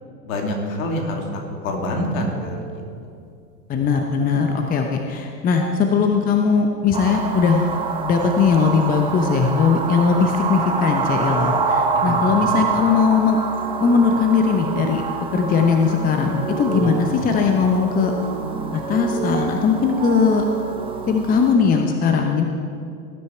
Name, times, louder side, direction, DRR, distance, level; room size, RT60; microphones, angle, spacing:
voice 1, 0.2-3.2 11.9-12.3 16.7-17.0, left 1 dB, 55° left, 1 dB, 2.6 m, -27 dB
sound 1, 2.3-3.3 3.9-4.9 5.5-6.2 6.6-7.9 8.2-9.1 9.7-10.2 10.5-21.3, right 5 dB, 50° right, 2.1 m, -33 dB
voice 2, 3.7-7.7 8.0-13.4 13.8-15.0 15.3-18.1 18.7-20.4 21.1-22.5, left 5 dB, 20° left, 3 dB, 0.8 m, -19 dB
sound 2, 6.9-21.5, right 4 dB, 10° right, 0.9 m, -27 dB
18.0 x 9.8 x 4.5 m, 2.4 s
figure-of-eight pair, 100°, 48 cm